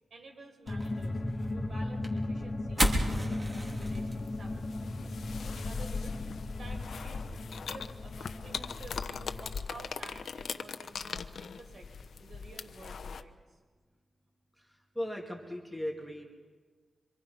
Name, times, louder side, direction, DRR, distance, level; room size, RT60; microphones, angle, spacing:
voice 1, 0.1-1.2 1.5-5.2 5.5-6.2 6.6-7.3 7.6-11.9 12.2-13.6, right 3 dB, 60° right, 3 dB, 5.2 m, -51 dB
sound 1, 0.7-9.9, left 2 dB, 45° left, 1.9 m, -37 dB
sound 2, 0.7-7.4, equal, 20° right, 3.6 m, -36 dB
sound 3, 3.5-13.2, left 5 dB, 70° left, 1.0 m, -40 dB
voice 2, 14.6-16.3, left 1 dB, ahead, 0 dB, 2.6 m, -38 dB
27.5 x 25.0 x 5.6 m, 1.5 s
wide cardioid pair, 125°, 0 cm